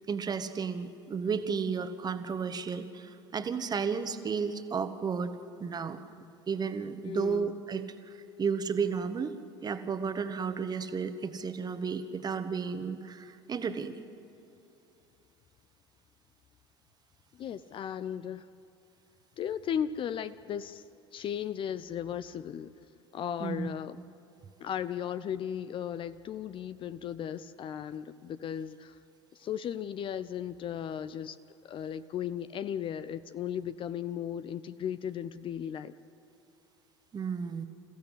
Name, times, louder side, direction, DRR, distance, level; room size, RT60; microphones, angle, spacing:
voice 1, 0.1-6.0 6.5-8.1 8.4-9.3 9.6-14.0 23.4-23.7 37.1-37.6, right 6 dB, 30° right, 10 dB, 1.5 m, -33 dB
voice 2, 7.1-7.6 17.4-18.5 19.4-20.8 21.1-22.7 23.1-24.0 24.6-29.0 29.3-31.4 31.6-35.9, left 9 dB, 35° left, 14 dB, 0.6 m, -36 dB
28.0 x 15.5 x 8.1 m, 2.9 s
figure-of-eight pair, 70°, 14 cm